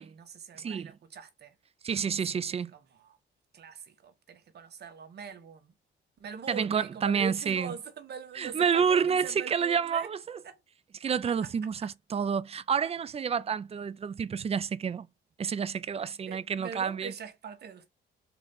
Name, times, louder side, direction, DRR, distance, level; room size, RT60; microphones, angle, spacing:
voice 1, 0.0-1.6 2.3-3.2 3.5-5.7 6.2-10.1 10.4-10.6 11.3-11.5 11.8-11.9 16.0-17.9, right 6 dB, 55° right, 1.3 m, -43 dB
voice 2, 0.6-0.9 1.8-2.7 6.5-7.7 8.4-10.4 11.0-15.1 15.4-17.1, right 7 dB, 30° right, 0.5 m, -29 dB
3.9 x 3.0 x 3.6 m
cardioid pair, 90°, 20 cm